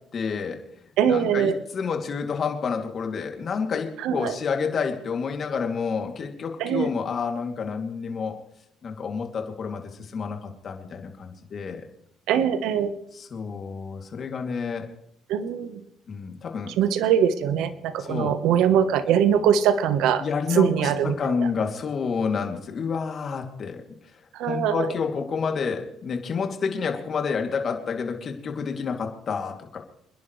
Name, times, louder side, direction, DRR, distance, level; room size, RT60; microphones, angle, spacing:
voice 1, 0.1-0.6 1.0-8.3 8.8-11.8 13.1-14.9 16.1-16.7 18.0-18.4 20.2-23.8 24.4-29.8, left 5 dB, 45° left, 3 dB, 2.7 m, -29 dB
voice 2, 1.0-1.6 4.0-4.4 6.6-6.9 12.3-12.9 15.3-15.8 16.8-20.2 20.5-21.1 24.3-24.9, right 8 dB, 80° right, 11 dB, 1.1 m, -22 dB
27.5 x 10.5 x 3.2 m, 0.77 s
cardioid pair, 105°, 0 cm